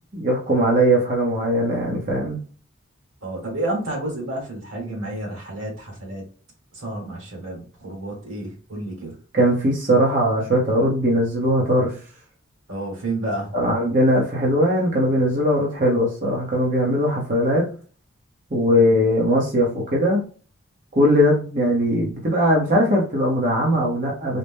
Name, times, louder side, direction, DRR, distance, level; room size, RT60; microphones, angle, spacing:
voice 1, 0.1-2.4 9.3-11.9 13.5-17.7 18.5-20.2 21.0-24.4, equal, 40° right, -2 dB, 0.8 m, -20 dB
voice 2, 3.2-6.2 6.7-9.2 12.7-13.5, right 1 dB, 80° right, -1 dB, 1.6 m, -30 dB
4.0 x 2.1 x 3.5 m, 0.40 s
head